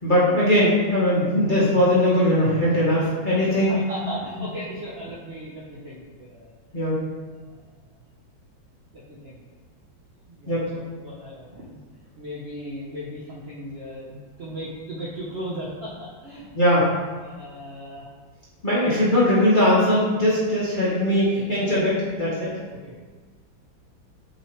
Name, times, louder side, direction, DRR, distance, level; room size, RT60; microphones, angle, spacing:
voice 1, 0.0-3.8 6.7-7.0 10.5-10.6 16.5-16.9 18.6-22.5, left 1 dB, 30° left, -8 dB, 1.0 m, -20 dB
voice 2, 3.7-6.5 7.5-7.6 8.9-9.4 10.3-11.8 12.2-16.5 17.2-18.1, equal, 50° right, -7 dB, 0.8 m, -37 dB
7.0 x 3.1 x 4.4 m, 1.4 s
omnidirectional pair, 2.1 m